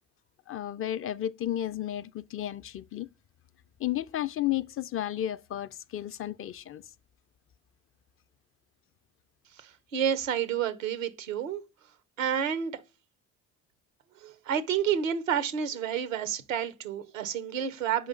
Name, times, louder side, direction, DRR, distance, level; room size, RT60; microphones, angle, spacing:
voice 1, 0.5-3.1 3.8-6.8, left 12 dB, 35° left, 0.4 m, -33 dB
voice 2, 9.6-11.6 12.2-12.8 14.2-18.1, right 8 dB, 90° right, 0.8 m, -30 dB
6.9 x 4.9 x 3.7 m
hypercardioid pair, 55°, 39 cm